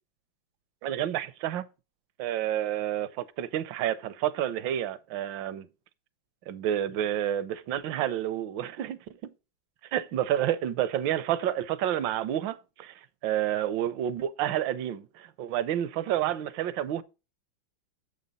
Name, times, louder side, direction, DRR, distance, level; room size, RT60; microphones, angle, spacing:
voice 1, 0.8-1.6 2.2-5.7 6.5-9.3 9.9-12.9 13.2-17.0, right 11 dB, 80° right, 1.4 m, -29 dB
7.3 x 5.1 x 5.3 m
omnidirectional pair, 2.1 m